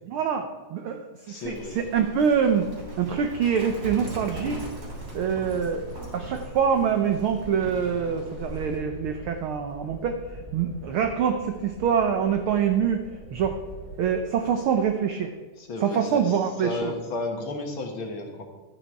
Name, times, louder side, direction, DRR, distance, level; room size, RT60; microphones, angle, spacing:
voice 1, 0.1-2.7 3.0-4.6 5.1-5.8 6.1-13.0 13.3-13.6 14.0-15.3 15.8-16.9, right 7 dB, 85° right, 6 dB, 1.2 m, -25 dB
voice 2, 1.3-1.8 15.6-18.4, left 2 dB, 55° left, 3 dB, 1.7 m, -33 dB
Livestock farm animals working animals, 1.4-8.8, right 2 dB, 30° right, 3.5 m, -39 dB
sound 1, 4.7-15.0, right 1 dB, 5° right, 2.3 m, -44 dB
11.5 x 9.3 x 4.6 m, 1.3 s
omnidirectional pair, 3.3 m